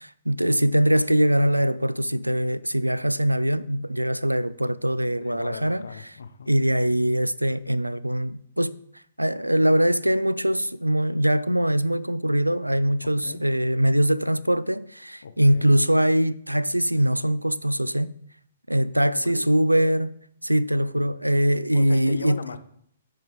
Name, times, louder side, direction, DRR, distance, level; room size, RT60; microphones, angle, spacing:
voice 1, 0.0-5.9 6.5-8.7 9.2-18.1 18.7-20.2 20.4-22.4, equal, 85° right, 0.3 m, -22 dB
voice 2, 5.0-6.5 13.0-13.4 15.2-15.8 19.0-19.5 21.7-22.6, left 5 dB, 60° left, 0.7 m, -38 dB
11.0 x 4.6 x 3.7 m
figure-of-eight pair, 120°, 0 cm